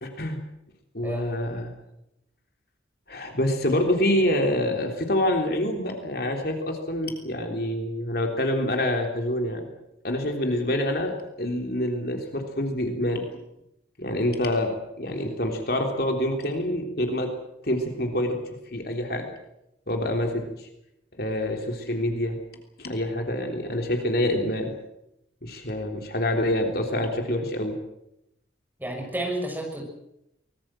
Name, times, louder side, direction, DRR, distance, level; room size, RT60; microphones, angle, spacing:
voice 1, 0.0-0.4 0.9-1.7 3.1-9.7 10.0-13.2 14.0-17.3 17.6-18.4 18.7-19.3 19.9-20.7 21.2-22.4 22.8-24.7 25.4-27.7, left 1 dB, 55° left, 3 dB, 3.5 m, -26 dB
voice 2, 1.0-1.6 28.8-29.8, right 1 dB, 10° right, 1 dB, 6.6 m, -32 dB
24.0 x 20.0 x 7.6 m, 0.83 s
head